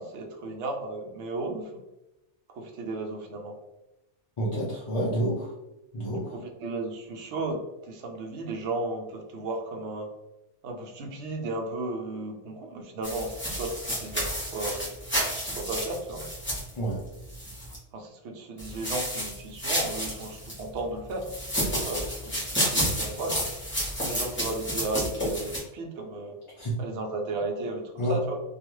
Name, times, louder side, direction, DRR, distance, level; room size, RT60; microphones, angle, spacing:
voice 1, 0.0-1.8 2.5-3.6 6.3-10.1 10.6-14.9 15.5-16.3 17.9-21.3 21.6-23.5 24.0-26.4 26.8-28.4, right 2 dB, 75° right, 3 dB, 0.9 m, -34 dB
voice 2, 4.4-5.5 5.9-6.3 16.8-17.0 26.6-26.7 28.0-28.2, right 1 dB, 45° left, -6 dB, 0.4 m, -28 dB
sound 1, 13.0-17.8 18.6-20.6 21.2-25.6, equal, 10° left, 0.7 m, -31 dB
2.3 x 2.3 x 3.0 m, 0.94 s
omnidirectional pair, 1.2 m